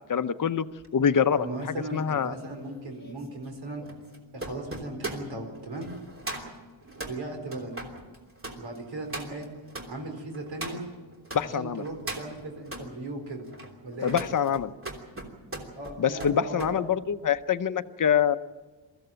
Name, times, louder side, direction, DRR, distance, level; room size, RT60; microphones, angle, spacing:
voice 1, 0.1-0.7 0.9-1.5 1.9-2.3 11.3-11.8 14.0-14.7 16.0-18.4, left 8 dB, 45° left, 12 dB, 0.8 m, -25 dB
sound 1, 0.8-11.4 11.8-12.9 13.4-16.8 17.1-17.4, right 2 dB, 25° right, 3.2 m, -40 dB
voice 2, 1.3-3.8 4.3-5.9 6.8-7.8 8.6-9.5 9.9-10.8 11.4-13.4 13.8-14.2 15.8-16.7, right 2 dB, 70° right, 3 dB, 4.5 m, -37 dB
23.0 x 15.0 x 8.9 m, 1.3 s
wide cardioid pair, 155°, 47 cm